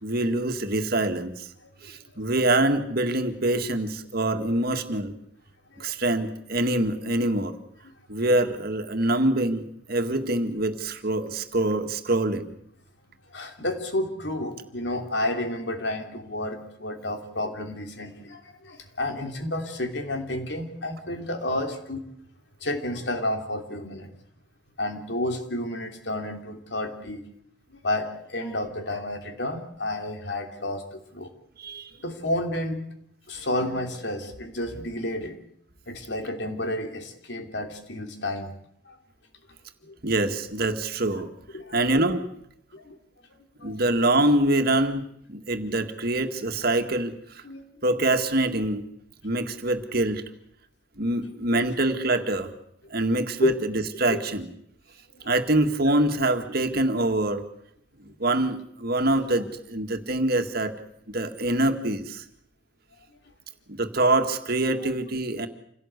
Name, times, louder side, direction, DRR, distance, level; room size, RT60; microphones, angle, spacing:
voice 1, 0.0-1.5 1.8-5.1 5.8-7.5 8.1-9.6 9.9-12.5 31.6-31.9 40.0-41.3 41.7-42.2 43.6-47.4 47.8-48.9 49.2-50.2 51.0-52.5 52.9-54.5 55.3-57.4 58.2-60.7 61.1-62.2 63.7-65.5, right 1 dB, 55° right, 7 dB, 2.0 m, -25 dB
voice 2, 13.3-22.0 22.6-24.1 24.8-27.2 27.7-31.3 32.0-32.8 33.3-35.4 35.9-38.6 38.8-39.0 39.8-40.0 41.1-41.2 41.5-41.8 42.7-43.0 43.6-43.8 47.4-47.8 51.5-51.6 53.4-53.6 54.1-54.2 55.1-55.2, left 1 dB, 65° left, 5 dB, 3.2 m, -31 dB
27.0 x 17.0 x 8.3 m, 0.72 s
head